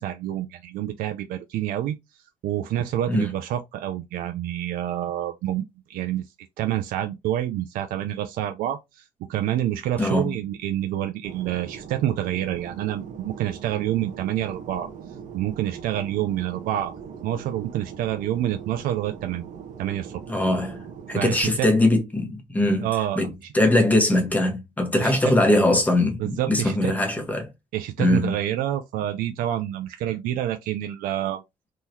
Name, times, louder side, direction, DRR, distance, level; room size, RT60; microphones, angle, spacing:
voice 1, 0.0-2.0 2.4-6.2 6.6-14.9 15.3-17.0 17.2-19.4 19.8-20.2 21.1-21.7 22.8-23.5 25.0-25.3 26.2-26.9 27.7-31.4, right 12 dB, 90° right, 0.4 m, -28 dB
voice 2, 10.0-10.3 20.3-22.9 23.2-27.5 28.0-28.4, left 1 dB, 10° left, 1.1 m, -21 dB
Fixed-wing aircraft airplane, 11.2-21.4, right 7 dB, 60° right, 0.8 m, -41 dB
3.7 x 3.0 x 2.7 m
cardioid pair, 140°, 14 cm